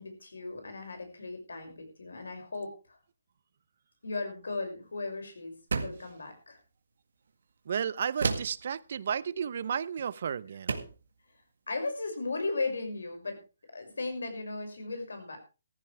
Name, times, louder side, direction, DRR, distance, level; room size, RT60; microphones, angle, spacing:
voice 1, 0.0-3.0 4.0-6.6 11.7-13.4 13.7-15.4, left 3 dB, 90° left, 6.0 m, -36 dB
sound 1, 5.7-6.1 8.2-8.7 10.0-10.1 10.7-11.0, right 4 dB, 75° right, 1.9 m, -31 dB
voice 2, 7.6-10.8, right 7 dB, 55° right, 0.7 m, -33 dB
15.0 x 15.0 x 3.4 m
hypercardioid pair, 160°, 0 cm